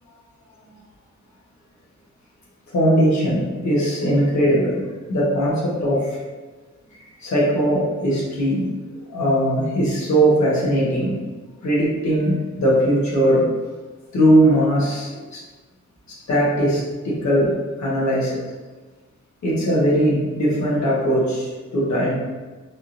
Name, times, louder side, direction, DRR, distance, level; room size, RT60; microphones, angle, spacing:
voice 1, 2.7-6.2 7.2-11.2 11.6-13.5 14.1-15.4 16.3-18.4 19.4-22.1, equal, 65° left, -6 dB, 1.1 m, -20 dB
3.4 x 2.8 x 2.5 m, 1.3 s
wide cardioid pair, 160°, 30 cm